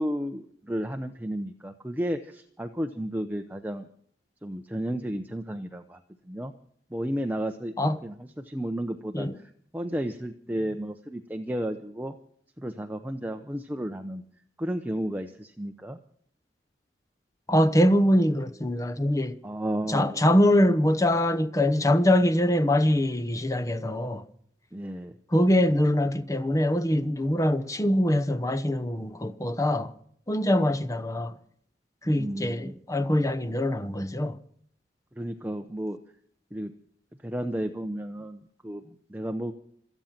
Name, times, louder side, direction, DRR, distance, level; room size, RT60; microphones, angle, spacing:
voice 1, 0.0-3.9 4.4-6.0 6.3-6.5 6.9-7.7 8.0-9.3 9.7-12.1 12.6-14.2 14.6-16.0 19.4-20.2 24.7-25.1 30.5-30.6 32.2-32.8 35.2-36.0 36.5-36.7 37.2-39.5, equal, 10° right, 0.8 m, -32 dB
voice 2, 17.5-19.4 19.9-24.2 25.3-29.9 30.3-31.3 32.0-34.4, left 1 dB, 20° left, 0.9 m, -23 dB
26.5 x 9.2 x 5.9 m
head